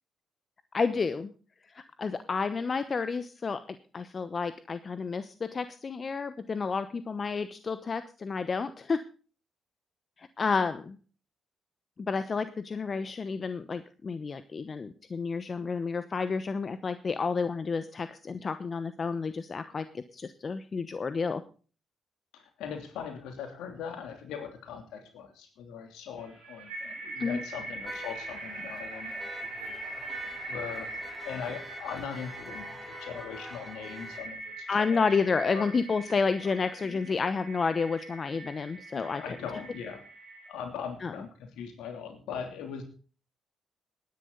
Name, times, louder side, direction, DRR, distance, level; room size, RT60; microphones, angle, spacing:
voice 1, 0.7-1.3 1.7-9.0 10.2-11.0 12.0-21.4 27.2-27.4 34.7-39.2 41.0-41.1, left 4 dB, 45° left, 12 dB, 0.9 m, -30 dB
voice 2, 22.3-29.3 29.5-29.8 30.5-30.9 31.2-35.0 35.4-35.7 36.8-37.1 38.9-40.0 40.5-42.8, left 7 dB, 75° left, 6 dB, 3.0 m, -40 dB
sound 1, 26.2-40.5, right 2 dB, 90° right, 7.9 m, -42 dB
sound 2, 27.8-34.2, equal, ahead, 4.8 m, -46 dB
18.5 x 10.0 x 3.9 m, 0.38 s
hypercardioid pair, 45°, 0 cm